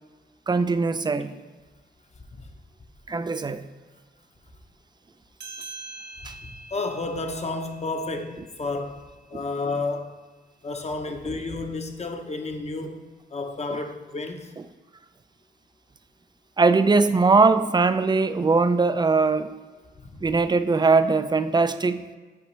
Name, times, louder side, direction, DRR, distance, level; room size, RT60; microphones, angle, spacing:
voice 1, 0.5-1.3 3.1-3.6 6.2-6.3 9.3-9.4 16.6-19.5 20.2-22.1, right 4 dB, 25° right, 11 dB, 0.5 m, -21 dB
sound 1, 5.4-10.3, right 3 dB, 65° right, 1.5 m, -45 dB
voice 2, 6.4-9.0 9.3-10.1 10.6-14.5 20.0-20.1, left 3 dB, 35° left, 5 dB, 1.0 m, -31 dB
7.9 x 4.9 x 3.3 m, 1.3 s
cardioid pair, 65°, 18 cm